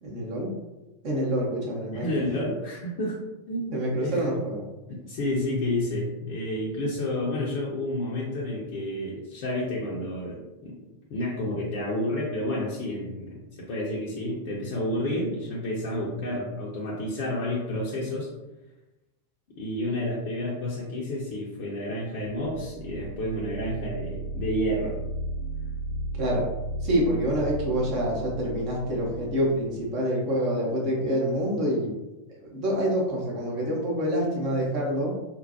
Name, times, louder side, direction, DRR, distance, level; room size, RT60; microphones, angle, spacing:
voice 1, 0.0-0.5 1.0-2.1 3.7-4.6 26.2-26.5 26.8-31.9 32.3-35.1, equal, 45° right, -3 dB, 0.9 m, -27 dB
voice 2, 1.9-3.2 3.5-4.2 4.9-10.7 11.1-18.3 19.6-24.9, left 1 dB, 45° left, -6 dB, 0.7 m, -30 dB
sound 1, 22.3-29.9, right 2 dB, 90° left, 0.8 m, -35 dB
4.4 x 2.2 x 2.7 m, 1.0 s
figure-of-eight pair, 90°, 0 cm